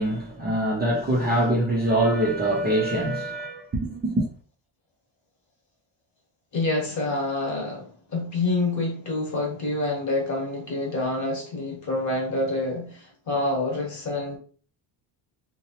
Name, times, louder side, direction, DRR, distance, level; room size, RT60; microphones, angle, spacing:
voice 1, 0.0-4.3, right 1 dB, 25° right, 0.4 m, -24 dB
voice 2, 6.5-14.4, left 2 dB, 40° left, 1.0 m, -27 dB
2.8 x 2.0 x 2.8 m
cardioid pair, 150°, 47 cm